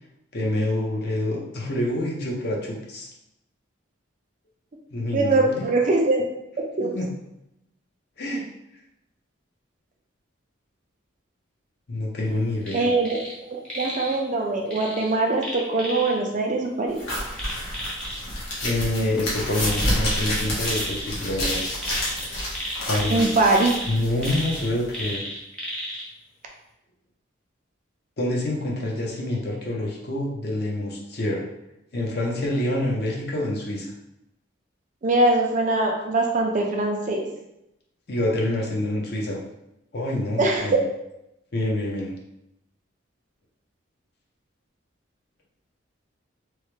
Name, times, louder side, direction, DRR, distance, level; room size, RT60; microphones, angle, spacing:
voice 1, 0.3-3.1 4.9-5.6 6.8-7.1 8.2-8.4 11.9-12.9 18.6-21.6 22.9-23.3 23.9-25.2 28.2-31.4 31.9-33.9 38.1-39.4 39.9-40.8 41.5-42.1, left 1 dB, 50° left, -2 dB, 0.6 m, -27 dB
voice 2, 5.1-6.2 6.8-6.9 12.7-17.0 23.1-23.7 28.8-28.9 35.0-37.3 40.4-40.8, right 2 dB, 40° right, 1 dB, 0.4 m, -22 dB
sound 1, 12.6-13.4 13.7-14.2 14.7-16.1 17.3-18.2 19.6-21.1 21.4-26.1 26.5-26.6, equal, 5° left, 0.6 m, -33 dB
sound 2, 17.0-25.1, left 1 dB, 80° left, 1.1 m, -29 dB
3.0 x 2.1 x 3.1 m, 0.86 s
head